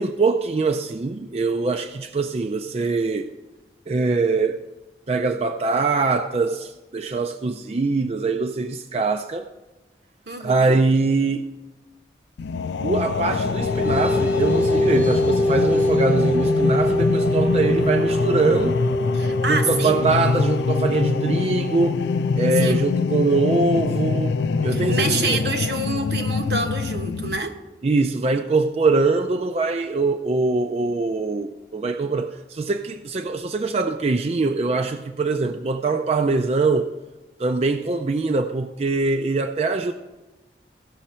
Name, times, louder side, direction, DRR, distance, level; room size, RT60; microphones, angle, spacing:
voice 1, 0.0-3.3 3.9-4.6 5.1-9.5 10.4-11.5 12.8-18.8 19.5-22.0 22.3-24.4 24.6-25.4 27.8-36.9 37.4-39.9, right 3 dB, 35° right, 0.3 m, -23 dB
voice 2, 10.3-10.8 19.1-20.0 22.6-22.9 24.7-27.5, right 3 dB, 75° right, 1.2 m, -27 dB
sound 1, 12.4-27.4, left 4 dB, 80° left, 0.4 m, -24 dB
sound 2, 13.2-24.1, left 1 dB, 10° right, 0.7 m, -25 dB
15.5 x 6.3 x 4.3 m
head